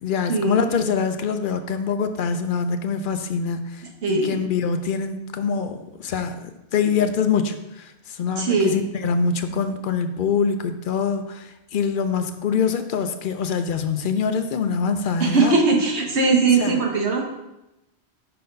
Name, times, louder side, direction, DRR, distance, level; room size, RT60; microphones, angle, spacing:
voice 1, 0.0-6.4 6.7-15.5 16.6-16.8, left 6 dB, 60° left, 8 dB, 0.7 m, -24 dB
voice 2, 4.0-4.4 8.4-8.8 15.2-17.2, right 4 dB, 90° right, 1 dB, 1.4 m, -20 dB
5.6 x 4.0 x 5.2 m, 0.92 s
omnidirectional pair, 1.1 m